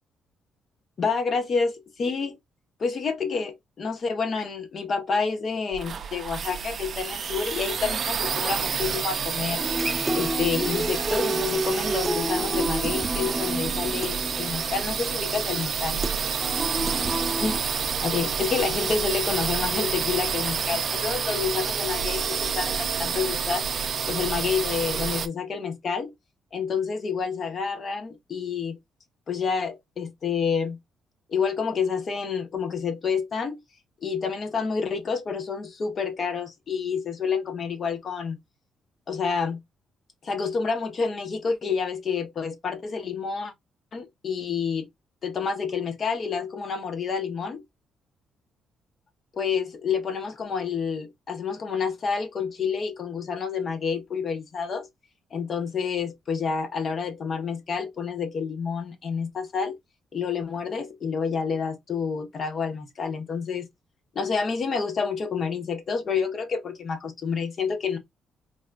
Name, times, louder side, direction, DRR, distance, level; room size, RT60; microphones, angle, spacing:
voice 1, 1.0-2.4 2.8-9.6 10.1-16.0 17.4-17.6 18.0-23.6 24.1-26.1 26.5-28.8 29.3-30.8 31.3-33.6 34.0-38.4 39.1-39.6 40.2-43.5 43.9-44.9 45.2-47.6 49.3-54.9 55.3-59.8 60.1-63.7 64.1-68.0, left 5 dB, 50° left, 0.8 m, -28 dB
sound 1, 5.7-25.3, right 6 dB, 50° right, 0.4 m, -29 dB
Human voice / Acoustic guitar, 9.6-17.6, right 1 dB, 10° right, 0.7 m, -30 dB
3.3 x 2.7 x 2.3 m
cardioid pair, 90°, 0 cm